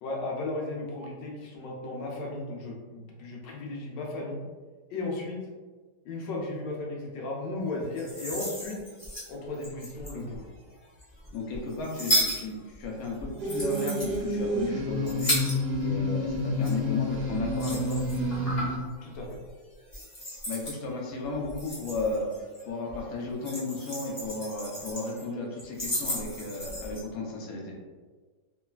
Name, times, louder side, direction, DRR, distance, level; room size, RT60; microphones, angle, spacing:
voice 1, 0.0-4.4 4.9-5.4 6.0-8.8 9.3-10.4 19.0-19.3, left 2 dB, 85° left, -2 dB, 1.3 m, -35 dB
sound 1, 7.8-10.4 11.0-16.0 16.3-18.8 19.2-19.5 19.9-20.8 21.3-22.6 22.9-25.2 25.6-27.0, equal, 35° left, 0.6 m, -34 dB
voice 2, 11.3-15.4 15.8-18.0 20.5-22.3 22.6-27.7, left 3 dB, 65° left, -2 dB, 1.0 m, -34 dB
sound 2, 13.4-18.8, left 1 dB, 75° right, 1.1 m, -29 dB
3.1 x 2.3 x 2.2 m, 1.4 s
omnidirectional pair, 1.9 m